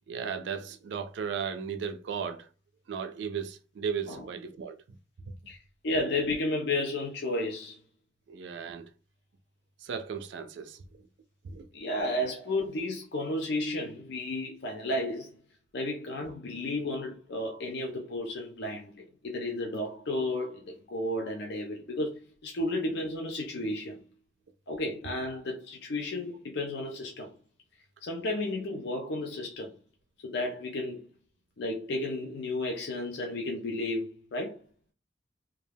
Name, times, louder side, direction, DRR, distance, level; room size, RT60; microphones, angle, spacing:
voice 1, 0.1-2.5 2.9-5.0 8.3-8.9 9.8-10.8 11.4-11.6, right 6 dB, 70° right, 0.3 m, -36 dB
voice 2, 5.8-7.8 11.7-15.4 15.7-24.0 24.7-27.3 28.0-29.7 30.2-31.1 31.6-34.6, left 1 dB, 65° left, 0.5 m, -33 dB
2.3 x 2.2 x 3.3 m
head